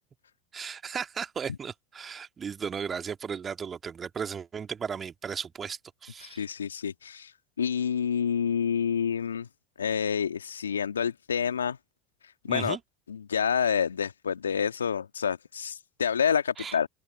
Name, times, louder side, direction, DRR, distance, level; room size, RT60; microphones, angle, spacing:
voice 1, 0.5-6.4 12.5-12.8 16.6-16.8, right 6 dB, 30° right, 2.2 m, -35 dB
voice 2, 6.2-9.5 9.8-11.8 12.2-12.8 13.1-16.9, left 7 dB, 80° left, 1.5 m, -28 dB
open air
figure-of-eight pair, 75°, 0 cm